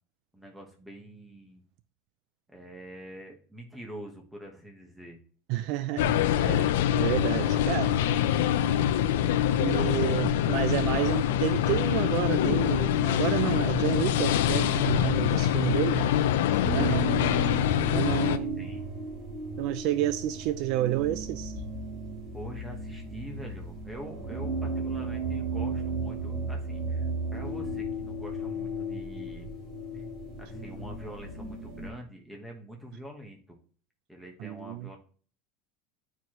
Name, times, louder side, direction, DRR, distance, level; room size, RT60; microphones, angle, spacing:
voice 1, 0.3-1.6 2.5-5.2 7.3-8.6 15.5-18.9 22.3-29.5 29.9-30.0 30.4-33.6 34.1-35.0, right 1 dB, ahead, 1.1 m, -45 dB
voice 2, 5.5-7.9 9.6-16.0 16.7-17.1 17.9-18.7 19.6-21.6 34.4-35.0, right 14 dB, 45° right, 0.3 m, -30 dB
sound 1, 6.0-18.4, left 10 dB, 80° left, 0.5 m, -25 dB
sound 2, 16.6-31.9, right 2 dB, 20° right, 3.1 m, -35 dB
9.4 x 4.7 x 2.9 m
supercardioid pair, 175°, 0 cm